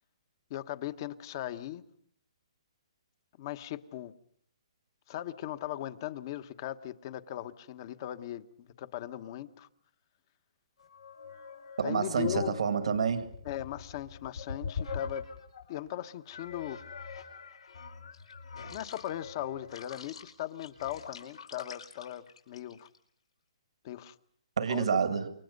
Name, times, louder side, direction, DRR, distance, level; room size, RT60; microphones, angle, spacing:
voice 1, 0.5-1.8 3.4-4.1 5.1-9.7 11.8-12.6 13.4-15.3 15.7-16.9 18.7-22.9 23.8-24.1 24.7-24.9, left 12 dB, 40° left, 1.2 m, -38 dB
sound 1, 10.8-15.8 16.3-23.0, left 5 dB, 90° left, 5.2 m, -43 dB
voice 2, 11.8-13.3 24.6-25.3, right 6 dB, 75° right, 2.1 m, -28 dB
28.5 x 23.0 x 5.4 m
hypercardioid pair, 150°, 3 cm